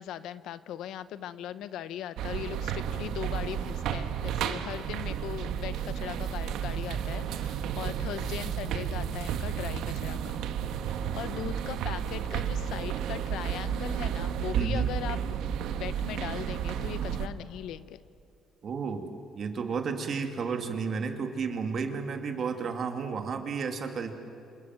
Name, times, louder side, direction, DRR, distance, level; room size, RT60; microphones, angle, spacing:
voice 1, 0.0-10.4 10.9-15.4 15.8-18.0, left 11 dB, 85° left, 14 dB, 0.9 m, -39 dB
sound 1, 2.2-17.3, right 8 dB, 90° right, 1.3 m, -32 dB
voice 2, 14.5-14.9 18.6-19.1 19.3-24.1, right 5 dB, 50° right, 5 dB, 2.6 m, -32 dB
27.5 x 26.5 x 7.8 m, 2.6 s
cardioid pair, 120°, 0 cm